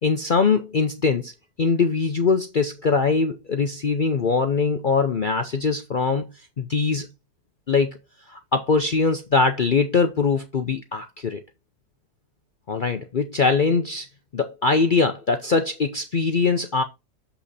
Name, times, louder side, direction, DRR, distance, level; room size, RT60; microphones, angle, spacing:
voice 1, 0.0-1.3 1.6-6.3 6.6-7.1 7.7-7.9 8.3-11.4 12.7-14.1 14.3-16.8, left 4 dB, 55° left, 0.5 m, -22 dB
7.1 x 5.8 x 4.1 m
omnidirectional pair, 1.7 m